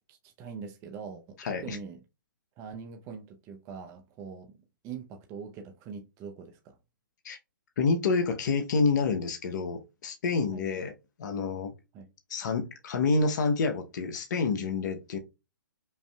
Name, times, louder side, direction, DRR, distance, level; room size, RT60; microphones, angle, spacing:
voice 1, 0.1-2.0 2.6-4.6 4.8-6.8 10.5-10.7 11.9-12.1, right 6 dB, 25° right, 0.7 m, -43 dB
voice 2, 1.4-1.8 7.2-7.4 7.8-10.9 11.2-11.7 12.3-15.2, left 4 dB, 60° left, 0.8 m, -28 dB
5.5 x 2.7 x 2.2 m
hypercardioid pair, 135°, 11 cm